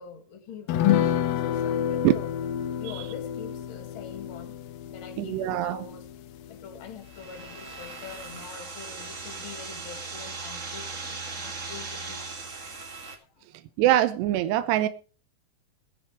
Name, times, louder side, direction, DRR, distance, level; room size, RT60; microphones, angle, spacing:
voice 1, 0.0-2.3 2.8-4.5 4.9-6.1 6.5-12.6 13.4-13.5, left 7 dB, 55° left, 1.5 m, -44 dB
sound 1, 0.7-7.5 7.8-7.9 8.2-8.4, left 10 dB, 80° left, 2.2 m, -29 dB
voice 2, 5.2-5.8 13.8-14.9, right 14 dB, 80° right, 2.8 m, -23 dB
sound 2, 7.0-13.1, right 4 dB, 65° right, 0.7 m, -38 dB
19.5 x 7.0 x 4.7 m
omnidirectional pair, 5.1 m